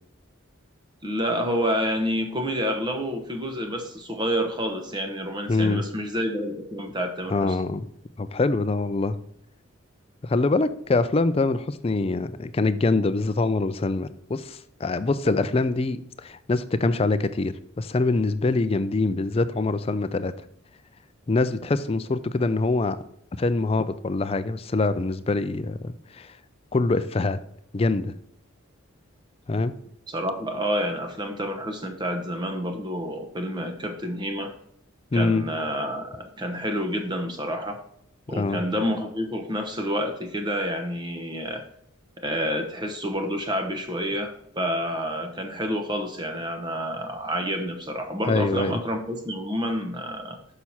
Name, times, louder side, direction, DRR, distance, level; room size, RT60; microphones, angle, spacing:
voice 1, 1.0-7.6 30.1-34.5 35.1-37.8 38.3-41.6 42.2-50.4, equal, 20° right, 5 dB, 0.9 m, -29 dB
voice 2, 5.5-5.8 7.3-7.9 8.2-9.2 10.2-20.3 21.3-23.0 23.4-26.3 26.7-27.4 27.7-28.1 29.5-29.7 35.1-35.5 38.4-38.6 48.3-48.8, left 3 dB, 30° left, 12 dB, 0.4 m, -24 dB
6.3 x 5.8 x 4.2 m, 0.73 s
head